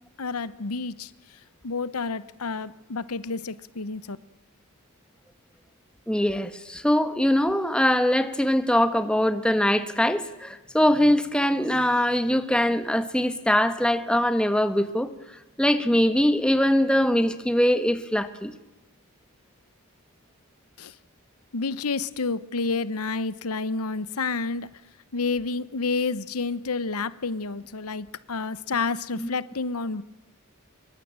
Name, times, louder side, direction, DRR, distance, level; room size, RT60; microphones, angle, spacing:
voice 1, 0.2-1.4 1.6-4.2 20.8-21.0 21.5-24.7 25.1-30.0, left 4 dB, 85° left, 0.9 m, -29 dB
voice 2, 6.1-15.1 15.6-18.5 29.2-29.3, equal, 5° left, 1.3 m, -22 dB
24.5 x 23.0 x 8.8 m
head